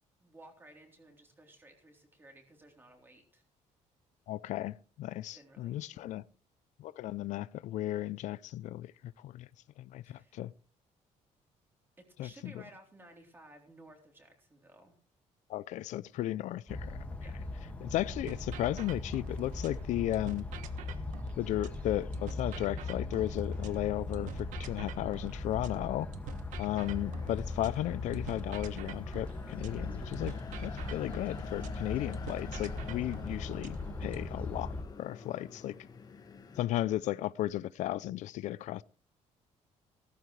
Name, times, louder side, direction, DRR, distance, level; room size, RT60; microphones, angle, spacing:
voice 1, 0.2-3.4 5.3-6.3 10.0-10.4 12.0-14.9 17.2-17.4 29.9-30.1, right 1 dB, 15° right, 3.7 m, -56 dB
voice 2, 4.3-6.2 6.8-9.5 9.8-10.5 12.2-12.5 15.5-17.0 17.8-20.5 21.4-26.1 26.6-30.3 30.6-35.7 36.6-38.8, left 14 dB, 75° left, 0.5 m, -35 dB
sound 1, 16.7-34.8, left 2 dB, 10° left, 2.0 m, -39 dB
sound 2, 18.3-19.8 20.1-23.8 24.1-27.8 28.1-31.8 32.1-34.3, right 10 dB, 85° right, 1.4 m, -48 dB
sound 3, 26.7-36.6, left 5 dB, 30° left, 1.5 m, -49 dB
16.5 x 14.0 x 3.3 m
cardioid pair, 160°, 13 cm